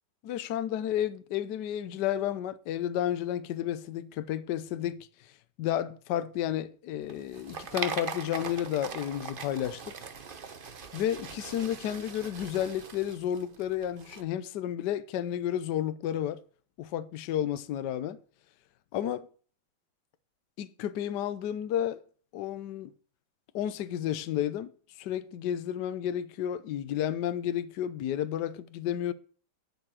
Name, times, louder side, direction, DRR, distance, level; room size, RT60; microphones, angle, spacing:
voice 1, 0.2-5.1 5.6-9.9 10.9-16.4 16.8-18.2 18.9-19.3 20.6-22.0 22.3-22.9 23.5-24.7 25.0-29.1, left 11 dB, 65° left, 1.3 m, -32 dB
sound 1, 7.0-14.2, right 5 dB, 40° right, 0.7 m, -41 dB
11.0 x 7.3 x 6.3 m
omnidirectional pair, 2.2 m